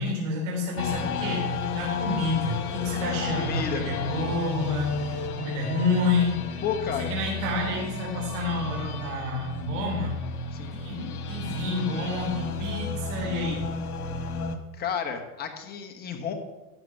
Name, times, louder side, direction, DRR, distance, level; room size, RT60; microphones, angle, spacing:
voice 1, 0.0-1.5 1.7-6.6 7.0-10.2 10.7-13.7, left 2 dB, 55° right, -2 dB, 3.5 m, -29 dB
sound 1, 0.8-14.6, left 4 dB, 85° left, 1.6 m, -32 dB
voice 2, 3.3-3.8 6.6-7.1 10.5-10.8 14.7-16.3, left 7 dB, 20° left, 4 dB, 1.2 m, -31 dB
12.0 x 7.6 x 5.7 m, 1.1 s
supercardioid pair, 145°, 44 cm